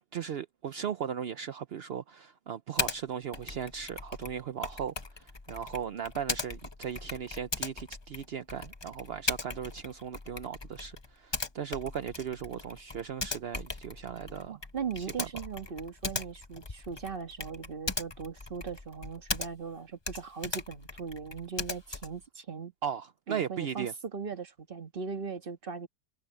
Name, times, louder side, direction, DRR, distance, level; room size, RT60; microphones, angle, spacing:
voice 1, 0.1-14.5 15.0-15.3 22.8-23.9, right 8 dB, 65° right, 0.6 m, -37 dB
Typing, 2.8-3.0 3.3-19.8 20.0-22.2, left 3 dB, 25° left, 0.6 m, -38 dB
voice 2, 14.5-22.7 23.3-25.9, right 6 dB, 35° right, 1.6 m, -39 dB
omnidirectional pair, 1.8 m